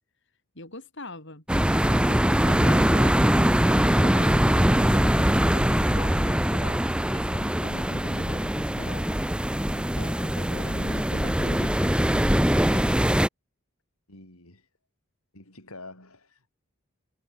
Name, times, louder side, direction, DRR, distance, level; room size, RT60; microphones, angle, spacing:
voice 1, 0.5-6.8 7.1-9.2 9.7-12.3 12.5-13.0, left 2 dB, 55° left, 6.8 m, -42 dB
sound 1, 1.5-13.3, equal, 5° right, 1.0 m, -22 dB
voice 2, 14.1-14.6 15.3-16.5, left 2 dB, 80° left, 7.5 m, -47 dB
head